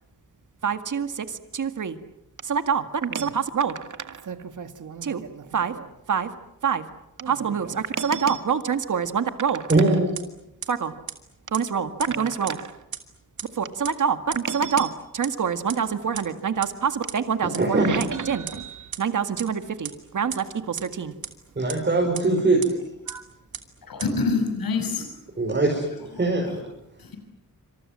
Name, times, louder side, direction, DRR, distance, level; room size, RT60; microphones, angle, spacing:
voice 1, 0.6-1.1 1.5-2.0 2.4-6.3 6.6-6.8 7.2-9.7 10.7-10.9 11.5-12.8 13.6-21.1 23.1-23.2, right 7 dB, 60° right, 9 dB, 1.9 m, -26 dB
voice 2, 9.7-10.1 17.6-18.0 21.6-22.8 25.4-25.9 26.2-26.6, right 2 dB, 30° right, 0 dB, 5.5 m, -21 dB
sound 1, 9.7-9.8 10.2-10.3 10.6-10.7 11.1-11.2 11.5-11.6 12.0-12.1 12.5-12.6 12.9-13.0 13.4-13.5 13.8-13.9 14.3-14.4 14.8-14.9 15.2-15.3 15.7-15.8 16.2-16.3 16.6-16.7 17.1-17.2 17.5-17.6 18.0-18.1 18.5-18.6 18.9-19.0 19.4-19.5 19.8-19.9 20.3-20.4 20.8-20.9 21.2-21.3 21.7-21.8 22.1-22.2 22.6-22.7 23.1-23.2 23.5-23.6 24.0-24.1, right 8 dB, 90° right, 2.9 m, -32 dB
voice 3, 23.8-25.1 26.1-26.6 27.0-27.2, left 4 dB, 85° left, 6 dB, 6.1 m, -27 dB
27.5 x 27.0 x 7.5 m, 0.84 s
wide cardioid pair, 120°, 34 cm